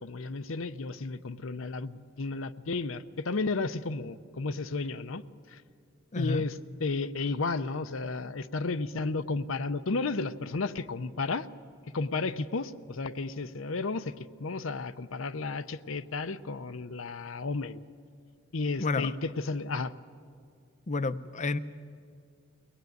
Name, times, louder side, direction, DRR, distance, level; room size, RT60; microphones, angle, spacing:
voice 1, 0.0-5.2 5.5-5.6 6.2-11.5 11.9-14.1 14.4-17.8 18.5-19.9, left 3 dB, 80° left, 12 dB, 0.7 m, -33 dB
voice 2, 18.8-19.1 20.9-21.6, left 3 dB, 40° left, 12 dB, 0.7 m, -29 dB
23.5 x 18.5 x 9.4 m, 2.2 s
head